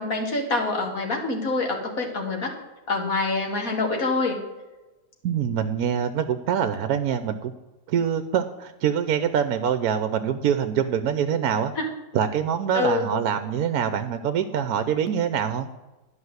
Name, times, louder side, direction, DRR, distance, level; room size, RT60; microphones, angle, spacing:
voice 1, 0.0-2.5 2.9-4.4 11.8-11.9 12.7-13.1, left 3 dB, 55° left, 2 dB, 2.2 m, -26 dB
voice 2, 5.2-7.5 7.9-11.7 12.1-15.7, right 8 dB, 70° right, 9 dB, 1.1 m, -24 dB
12.0 x 5.6 x 8.0 m, 1.1 s
omnidirectional pair, 1.7 m